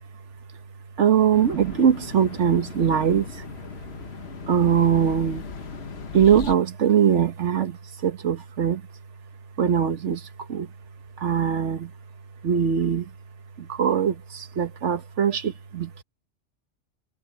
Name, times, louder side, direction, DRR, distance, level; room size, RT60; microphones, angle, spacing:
voice 1, 1.0-3.5 4.5-5.5 6.1-8.8 9.6-10.7 11.2-11.9 12.4-13.1 13.6-15.9, right 8 dB, 70° right, 1.4 m, -22 dB
sound 1, 1.3-6.5, left 7 dB, 60° left, 1.2 m, -39 dB
omnidirectional pair, 1.3 m